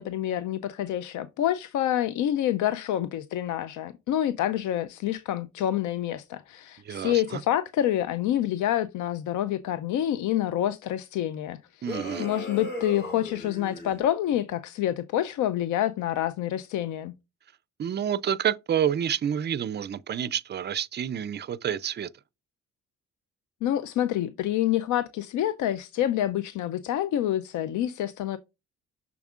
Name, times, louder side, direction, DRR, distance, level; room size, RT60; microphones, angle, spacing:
voice 1, 0.0-11.8 12.2-17.1 23.6-28.4, left 12 dB, 75° left, 0.5 m, -27 dB
voice 2, 6.8-7.4 11.8-12.3 17.8-22.1, right 9 dB, 35° right, 0.4 m, -28 dB
sound 1, 11.8-14.0, left 1 dB, 35° left, 3.0 m, -37 dB
7.0 x 6.0 x 2.4 m
cardioid pair, 90°, 30 cm